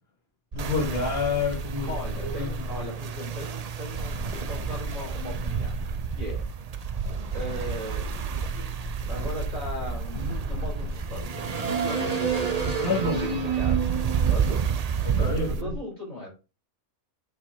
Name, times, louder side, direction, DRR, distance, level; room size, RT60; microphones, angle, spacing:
voice 1, 0.5-1.9 2.3-2.8 12.6-13.2 15.0-15.7, left 4 dB, 45° left, 2.0 m, -28 dB
sound 1, 0.5-2.8 3.9-6.4 7.0-15.8, right 3 dB, 30° right, 1.2 m, -32 dB
sound 2, 0.6-15.6, right 7 dB, 90° right, 0.3 m, -31 dB
voice 2, 1.9-5.8 6.2-6.4 7.3-8.1 8.5-8.7 9.1-13.8 14.1-14.7 15.2-16.3, equal, 70° right, 4.5 m, -38 dB
8.4 x 4.4 x 3.5 m
omnidirectional pair, 1.4 m